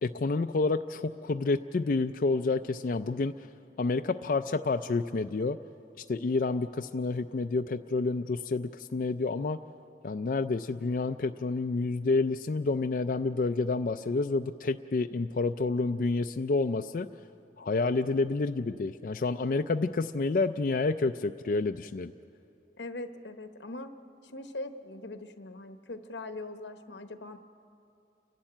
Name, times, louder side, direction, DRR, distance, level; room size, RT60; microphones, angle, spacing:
voice 1, 0.0-3.3 3.8-5.6 6.1-9.6 10.0-17.1 17.6-22.1, left 3 dB, 50° left, 7 dB, 0.4 m, -29 dB
voice 2, 22.8-23.9 24.2-27.4, left 2 dB, 90° left, 9 dB, 1.1 m, -41 dB
30.0 x 11.5 x 8.8 m, 2.7 s
head